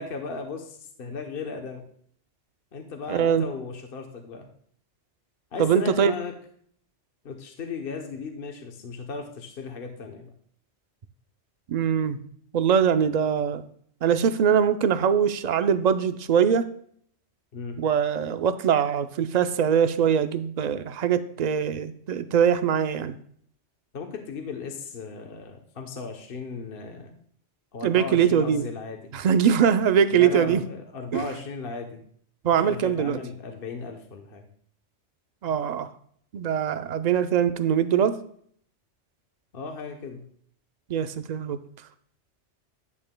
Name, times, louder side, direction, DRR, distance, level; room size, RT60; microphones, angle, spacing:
voice 1, 0.0-1.8 2.7-4.5 5.5-6.3 7.2-10.3 17.5-17.8 23.9-27.2 27.7-29.1 30.1-32.0 32.6-34.5 39.5-40.3, left 4 dB, 55° left, 3 dB, 1.0 m, -36 dB
voice 2, 3.1-3.4 5.6-6.1 11.7-12.2 12.5-13.6 14.0-16.7 17.8-23.1 27.8-28.7 29.1-30.6 31.1-31.3 32.4-33.2 35.4-35.9 36.3-38.2 40.9-41.6, right 8 dB, 60° right, 11 dB, 0.4 m, -22 dB
11.0 x 8.7 x 2.2 m, 0.62 s
omnidirectional pair, 1.2 m